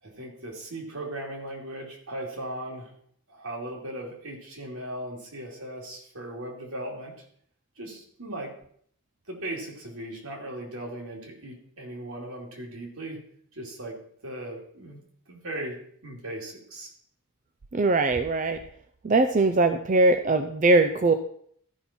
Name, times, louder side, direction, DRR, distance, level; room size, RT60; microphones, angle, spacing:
voice 1, 0.0-2.9 3.3-7.2 7.8-8.5 9.3-13.2 13.5-14.0 14.2-15.8 16.0-16.9, right 1 dB, 75° right, -1 dB, 2.6 m, -38 dB
voice 2, 17.7-18.6 19.0-21.1, right 2 dB, 35° right, 8 dB, 0.4 m, -21 dB
13.5 x 5.7 x 4.3 m, 0.63 s
head